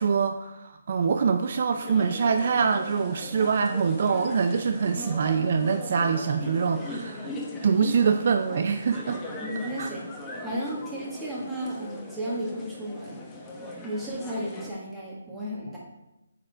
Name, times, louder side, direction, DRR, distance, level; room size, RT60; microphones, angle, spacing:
voice 1, 0.0-7.3 7.6-9.2 9.8-9.9, right 6 dB, 50° right, 6 dB, 0.4 m, -24 dB
sound 1, 1.7-14.7, left 1 dB, 15° left, 0.8 m, -39 dB
voice 2, 9.4-10.0 10.4-13.2 13.8-15.8, equal, 5° right, -7 dB, 1.5 m, -33 dB
8.5 x 3.7 x 3.4 m, 0.94 s
hypercardioid pair, 155°, 0 cm